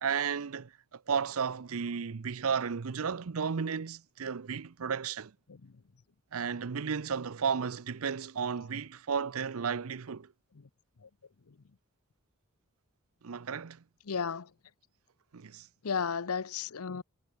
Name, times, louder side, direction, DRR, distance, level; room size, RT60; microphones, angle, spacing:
voice 1, 0.0-5.3 6.3-10.3 13.2-13.8 15.3-15.7, right 6 dB, 75° right, 0.6 m, -33 dB
voice 2, 14.1-14.5 15.8-17.0, left 6 dB, 80° left, 0.7 m, -34 dB
head